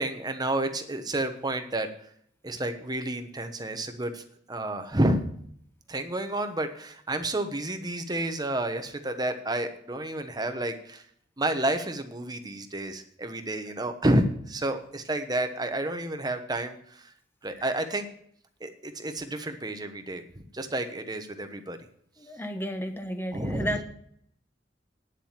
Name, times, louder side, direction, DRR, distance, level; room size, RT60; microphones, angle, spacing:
voice 1, 0.0-1.9 2.4-5.3 5.9-11.0 11.4-17.1 17.4-18.1 18.6-21.8 23.3-23.8, right 1 dB, 20° right, 7 dB, 1.1 m, -30 dB
voice 2, 22.2-23.8, equal, 10° left, 6 dB, 1.2 m, -32 dB
9.8 x 7.3 x 7.4 m, 0.65 s
head